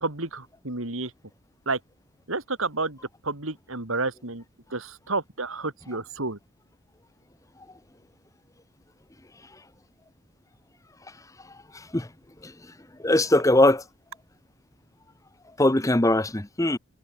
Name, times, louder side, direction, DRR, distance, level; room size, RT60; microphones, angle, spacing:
voice 1, 0.0-1.1 1.7-1.8 2.3-3.0 3.2-4.4 4.7-6.4, right 3 dB, 75° right, 3.4 m, -30 dB
voice 2, 11.7-12.1 12.4-12.5 13.0-13.8 15.6-16.8, left 1 dB, 15° left, 0.8 m, -21 dB
head